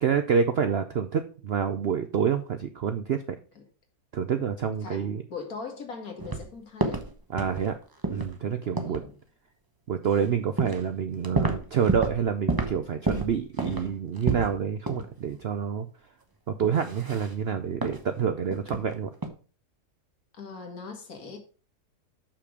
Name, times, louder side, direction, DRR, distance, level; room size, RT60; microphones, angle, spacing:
voice 1, 0.0-3.4 4.1-5.2 7.3-7.8 8.1-9.0 9.9-15.9 16.5-19.1, right 7 dB, 65° right, 0.6 m, -27 dB
voice 2, 4.8-7.0 8.7-9.1 20.3-21.4, left 4 dB, 60° left, 2.1 m, -40 dB
sound 1, 6.2-6.5 6.8-7.7 8.0-8.3 8.8-9.1 10.1-10.2 10.6-10.9 11.1-12.2 12.5-12.8 13.1-14.6 14.9-15.1 15.4-15.5 16.6-17.3 17.8-18.0 18.5-18.9 19.1-19.3, right 2 dB, 20° right, 0.7 m, -29 dB
6.8 x 5.9 x 4.8 m
omnidirectional pair, 1.7 m